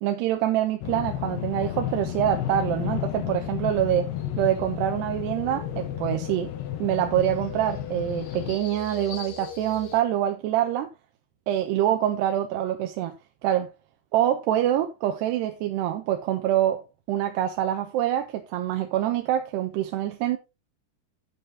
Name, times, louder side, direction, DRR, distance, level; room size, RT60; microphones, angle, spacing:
voice 1, 0.0-4.1 4.4-6.5 6.8-10.9 11.5-13.2 13.4-13.7 14.1-16.8 17.1-20.4, right 12 dB, 80° right, 3.1 m, -25 dB
sound 1, 0.8-8.6, left 13 dB, 80° left, 3.2 m, -32 dB
sound 2, 4.1-10.0, left 6 dB, 45° left, 3.4 m, -42 dB
11.5 x 7.4 x 3.6 m
omnidirectional pair, 4.9 m